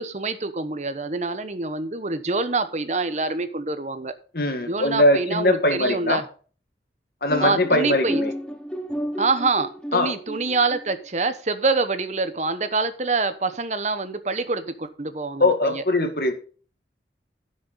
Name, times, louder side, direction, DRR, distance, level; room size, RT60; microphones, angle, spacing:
voice 1, 0.0-4.1 4.7-6.2 7.4-8.2 9.2-15.8, right 3 dB, 40° right, 11 dB, 1.0 m, -26 dB
voice 2, 4.3-6.2 7.2-8.3 9.9-10.1 15.4-16.3, left 2 dB, 55° left, 6 dB, 1.9 m, -21 dB
sound 1, 7.3-11.0, equal, 5° left, 0.9 m, -32 dB
11.0 x 6.6 x 5.2 m, 0.40 s
head